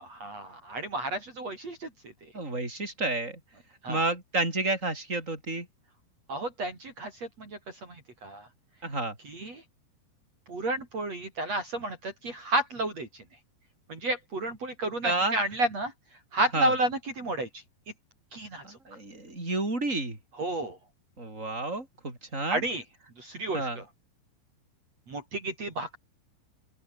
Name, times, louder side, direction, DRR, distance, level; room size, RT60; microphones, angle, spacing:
voice 1, 0.2-1.9 3.8-4.0 6.3-8.5 9.2-9.6 10.5-13.1 13.9-15.9 16.3-17.5 18.3-18.8 20.4-20.8 22.5-22.8 23.2-23.8 25.1-26.0, right 2 dB, 35° right, 5.8 m, -31 dB
voice 2, 2.3-3.4 3.9-5.7 8.8-9.2 15.0-15.4 16.5-16.7 18.6-20.2 21.2-22.6 23.5-23.8, right 2 dB, 15° right, 7.6 m, -30 dB
open air
omnidirectional pair, 5.0 m